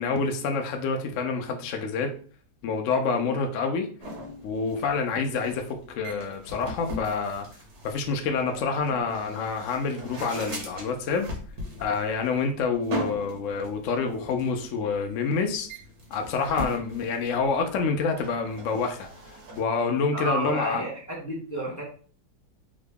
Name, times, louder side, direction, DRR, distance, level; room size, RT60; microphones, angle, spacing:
voice 1, 0.0-2.1 2.6-3.9 4.4-7.5 7.8-11.3 11.8-15.7 16.1-19.1 19.6-20.8, left 4 dB, 70° left, 0.7 m, -27 dB
sound 1, 4.0-19.6, equal, 60° right, 1.4 m, -40 dB
voice 2, 20.1-21.8, right 2 dB, 30° left, 0.3 m, -31 dB
3.7 x 2.0 x 3.4 m
omnidirectional pair, 1.9 m